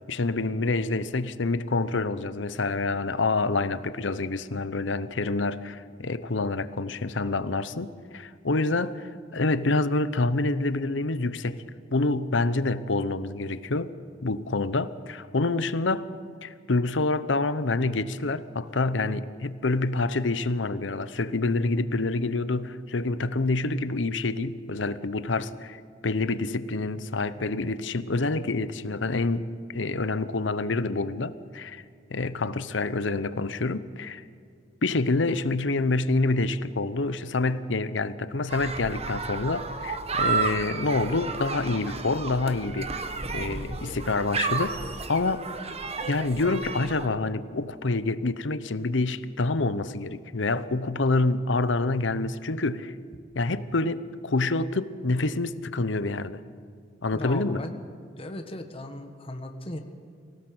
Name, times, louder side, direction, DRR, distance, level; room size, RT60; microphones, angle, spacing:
voice 1, 0.1-11.6 11.9-13.9 14.2-16.1 16.4-25.8 26.0-31.8 32.1-34.2 34.8-42.9 43.3-45.4 46.1-52.9 53.3-56.4 57.0-57.6, left 3 dB, 80° left, 0.9 m, -27 dB
sound 1, 38.5-47.1, right 4 dB, 35° right, 1.2 m, -32 dB
voice 2, 57.1-57.8 58.2-59.8, left 1 dB, 30° left, 1.6 m, -37 dB
24.5 x 17.5 x 7.9 m
head